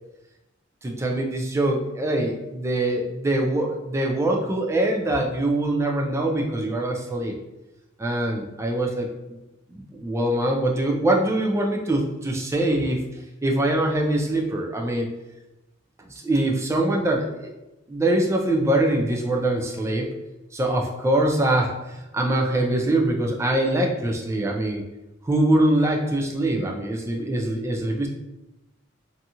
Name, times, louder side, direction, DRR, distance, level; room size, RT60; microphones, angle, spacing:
voice 1, 0.8-7.3 8.0-9.1 9.7-13.0 13.4-15.1 16.1-17.5 17.9-20.1 20.5-24.8 25.2-28.1, right 1 dB, 15° right, 1 dB, 0.3 m, -23 dB
2.6 x 2.3 x 2.8 m, 0.99 s
head